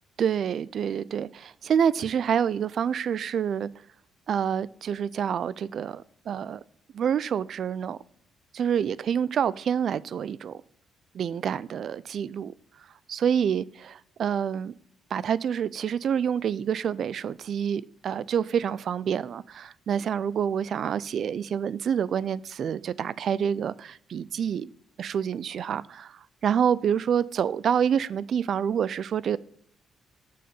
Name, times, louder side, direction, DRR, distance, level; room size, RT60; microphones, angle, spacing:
voice 1, 0.2-3.7 4.3-6.6 6.9-8.0 8.5-10.6 11.1-12.5 13.1-13.9 14.2-14.7 15.1-24.7 25.0-29.4, right 8 dB, 60° right, 0.3 m, -27 dB
6.6 x 6.4 x 4.0 m
cardioid pair, 90°, 0 cm